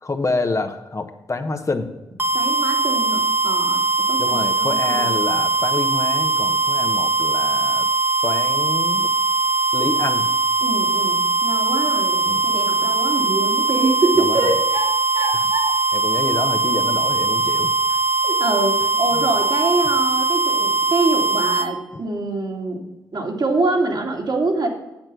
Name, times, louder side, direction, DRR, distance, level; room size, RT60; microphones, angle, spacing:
voice 1, 0.0-1.9 4.2-7.9 8.2-9.1 9.7-10.3 12.3-12.4 14.2-14.5 15.3-15.4 15.9-17.7, left 3 dB, 40° left, 7 dB, 1.1 m, -27 dB
sound 1, 2.2-21.7, right 3 dB, 25° right, 1.5 m, -20 dB
voice 2, 2.3-3.8 4.1-5.2 10.6-14.9 15.1-15.7 16.7-16.8 18.2-22.8 23.1-24.7, right 2 dB, 60° right, 1 dB, 2.4 m, -24 dB
8.8 x 7.6 x 6.1 m, 0.99 s
cardioid pair, 55°, 8 cm